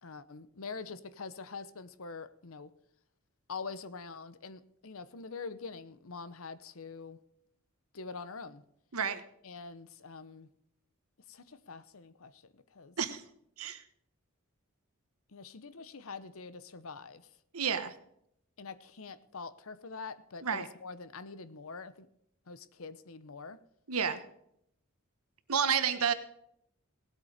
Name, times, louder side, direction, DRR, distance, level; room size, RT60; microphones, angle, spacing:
voice 1, 0.0-2.7 3.5-7.2 7.9-8.6 9.4-10.5 11.3-13.0 15.3-17.3 18.6-22.1 22.5-23.6, left 4 dB, 70° left, 15 dB, 0.9 m, -45 dB
voice 2, 17.5-17.9 20.4-20.7 23.9-24.2 25.5-26.1, right 7 dB, 80° right, 11 dB, 1.2 m, -30 dB
18.0 x 8.4 x 5.0 m, 0.74 s
head